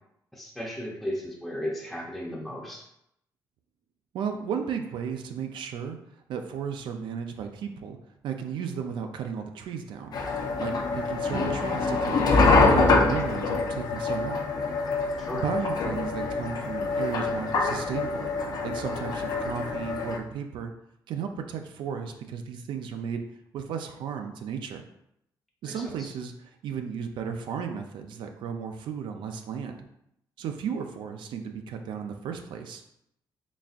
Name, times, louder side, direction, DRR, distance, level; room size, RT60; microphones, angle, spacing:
voice 1, 0.3-2.8 15.2-15.4 25.7-26.1, equal, ahead, -4 dB, 0.6 m, -35 dB
voice 2, 4.1-6.0 6.3-8.0 8.2-10.1 10.6-12.2 12.6-14.4 15.3-18.3 18.6-20.7 21.1-23.2 23.5-24.8 25.6-29.8 30.4-32.8, right 7 dB, 85° right, 5 dB, 0.4 m, -34 dB
sound 1, 10.1-20.2, left 3 dB, 55° left, 0.6 m, -25 dB
4.0 x 3.4 x 2.4 m, 0.77 s
cardioid pair, 135°, 8 cm